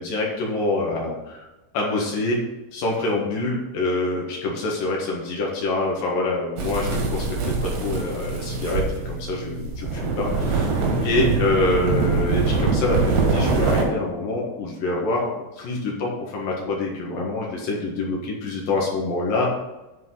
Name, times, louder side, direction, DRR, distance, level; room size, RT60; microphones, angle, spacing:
voice 1, 0.0-1.5 1.7-2.4 2.7-10.7 11.0-19.5, left 2 dB, 60° left, -2 dB, 3.0 m, -26 dB
sound 1, 6.6-13.8, right 4 dB, 85° right, 4.2 m, -23 dB
10.5 x 4.5 x 5.7 m, 1.0 s
omnidirectional pair, 5.0 m